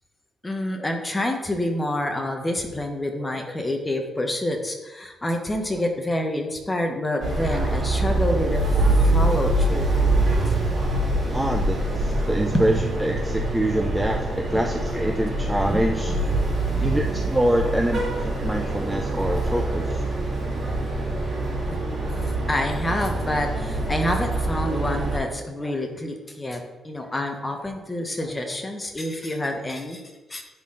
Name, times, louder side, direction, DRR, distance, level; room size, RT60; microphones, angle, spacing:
voice 1, 0.4-8.6 9.0-9.9 10.7-10.8 12.5-12.8 14.5-14.6 15.7-15.8 16.4-16.6 21.7-30.4, left 1 dB, 15° left, 4 dB, 0.9 m, -28 dB
sound 1, 7.2-25.2, right 2 dB, 35° right, 2.1 m, -24 dB
voice 2, 11.3-12.7 13.0-16.1 16.8-20.1, right 1 dB, 5° right, 3 dB, 0.4 m, -25 dB
9.9 x 4.2 x 3.8 m, 1.1 s
cardioid pair, 165°, 0 cm